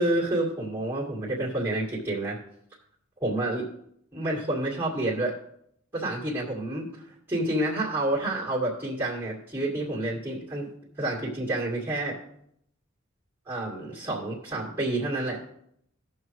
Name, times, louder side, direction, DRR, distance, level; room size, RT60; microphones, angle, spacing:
voice 1, 0.0-2.4 3.2-3.7 4.1-5.3 5.9-10.7 11.0-12.2 13.5-15.5, right 1 dB, 10° right, -6 dB, 2.1 m, -29 dB
17.0 x 6.4 x 3.1 m, 0.73 s
head